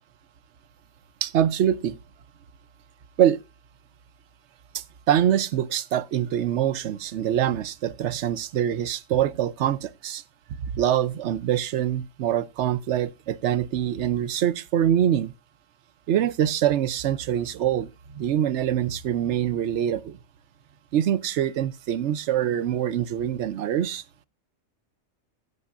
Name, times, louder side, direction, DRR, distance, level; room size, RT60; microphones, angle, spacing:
voice 1, 1.2-1.9 3.2-3.4 4.7-10.2 10.7-15.3 16.1-17.9 18.1-20.2 20.9-24.0, right 10 dB, 65° right, 0.9 m, -24 dB
16.0 x 6.9 x 2.5 m
omnidirectional pair, 1.5 m